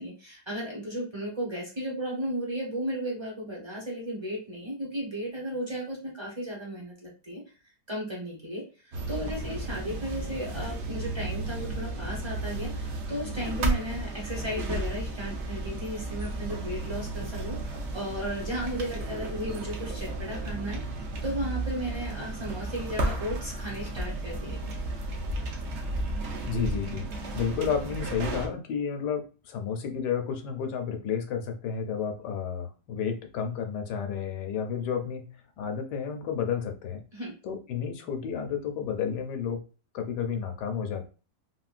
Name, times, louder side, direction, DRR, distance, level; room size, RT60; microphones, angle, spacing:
voice 1, 0.0-7.4 7.9-20.8 21.2-24.6 37.1-37.3, equal, 25° right, -4 dB, 0.5 m, -35 dB
sound 1, 8.9-28.5, right 2 dB, 80° right, 0.6 m, -33 dB
voice 2, 26.5-27.0 27.3-37.0 37.4-39.6 39.9-41.1, left 7 dB, 75° left, 5 dB, 1.2 m, -31 dB
3.7 x 2.1 x 2.4 m, 0.34 s
omnidirectional pair, 1.9 m